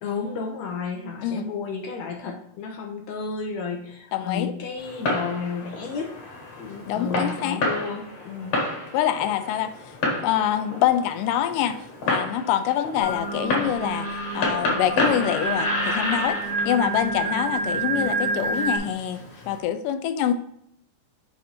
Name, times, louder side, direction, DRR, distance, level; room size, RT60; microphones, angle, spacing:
voice 1, 0.0-6.1 6.6-8.5, left 5 dB, 75° left, 1.7 m, -32 dB
voice 2, 4.1-4.5 6.9-7.6 8.9-9.7 10.2-11.8 12.1-14.1 14.3-16.4 16.7-19.2 19.5-20.3, left 10 dB, 90° left, 2.2 m, -25 dB
Fireworks, 4.8-19.6, left 2 dB, 55° left, 2.1 m, -31 dB
Singing, 13.0-18.8, right 3 dB, 50° right, 0.8 m, -28 dB
7.7 x 2.6 x 5.1 m
omnidirectional pair, 3.8 m